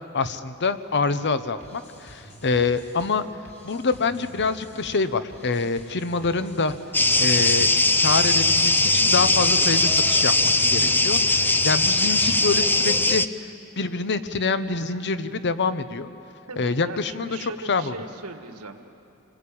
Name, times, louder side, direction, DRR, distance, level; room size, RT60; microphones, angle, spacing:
voice 1, 0.1-3.2 3.6-6.7 7.2-7.7 8.0-13.2 13.8-16.1 16.6-18.0, left 4 dB, 50° left, 12 dB, 1.0 m, -26 dB
sound 1, 1.6-12.7, equal, 30° left, 3.2 m, -48 dB
sound 2, 6.9-13.3, left 2 dB, 10° left, 0.6 m, -20 dB
voice 2, 16.5-18.8, right 3 dB, 75° right, 7 dB, 1.7 m, -39 dB
27.5 x 20.5 x 8.7 m, 2.9 s
head